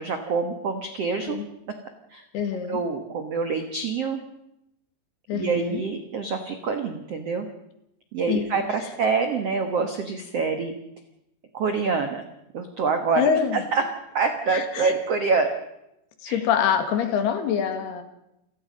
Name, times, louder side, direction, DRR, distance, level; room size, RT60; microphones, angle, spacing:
voice 1, 0.0-1.4 2.1-2.2 2.7-4.2 5.3-7.5 8.1-10.7 11.5-12.2 12.5-13.8 14.1-15.5 16.3-16.4, right 4 dB, 85° right, 7 dB, 1.3 m, -26 dB
voice 2, 2.3-2.8 5.3-5.8 8.3-8.5 13.2-13.6 14.5-14.9 16.2-18.0, left 7 dB, 70° left, 8 dB, 3.7 m, -25 dB
29.0 x 17.0 x 5.3 m, 0.85 s
omnidirectional pair, 5.1 m